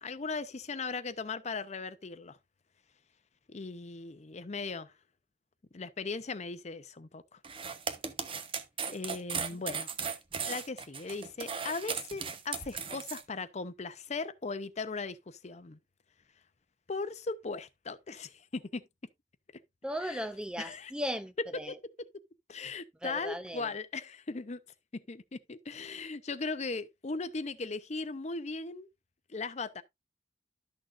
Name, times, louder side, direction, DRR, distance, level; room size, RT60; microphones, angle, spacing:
voice 1, 0.0-2.4 3.5-4.9 5.7-7.4 8.9-9.9 10.4-15.8 16.9-18.8 20.0-20.2 20.6-20.9 21.7-22.1 22.5-24.6 24.9-28.9 29.3-29.8, left 4 dB, 40° left, 0.6 m, -38 dB
sound 1, 7.4-13.2, right 6 dB, 30° right, 0.9 m, -37 dB
voice 2, 19.8-21.8 23.0-23.7, equal, 5° right, 0.5 m, -37 dB
12.5 x 6.4 x 2.5 m
head